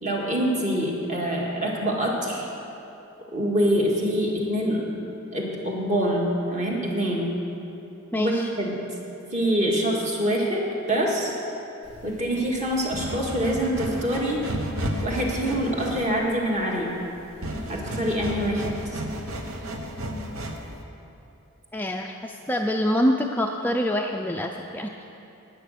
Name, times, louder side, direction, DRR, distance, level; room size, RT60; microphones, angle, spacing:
voice 1, 0.0-2.5 3.3-4.9 5.3-7.4 8.2-10.6 10.9-11.3 12.0-14.5 15.0-16.9 17.7-19.0, equal, 35° right, -2 dB, 1.9 m, -25 dB
voice 2, 8.1-8.5 21.7-24.9, equal, 10° left, 2 dB, 0.4 m, -25 dB
sound 1, 11.8-20.8, equal, 75° right, 1.1 m, -33 dB
12.0 x 9.3 x 6.6 m, 2.9 s
head